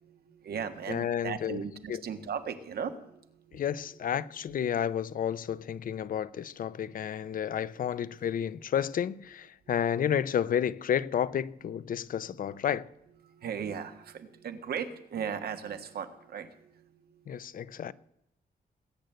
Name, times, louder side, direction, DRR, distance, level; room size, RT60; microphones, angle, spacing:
voice 1, 0.0-3.7 4.7-4.9 6.1-6.2 6.9-8.7 9.7-10.1 13.2-17.9, right 7 dB, 70° right, 1.5 m, -39 dB
voice 2, 0.9-1.6 1.9-2.0 3.5-12.8 17.3-17.9, left 9 dB, 60° left, 0.6 m, -31 dB
20.0 x 9.1 x 7.8 m
wide cardioid pair, 170°, 16 cm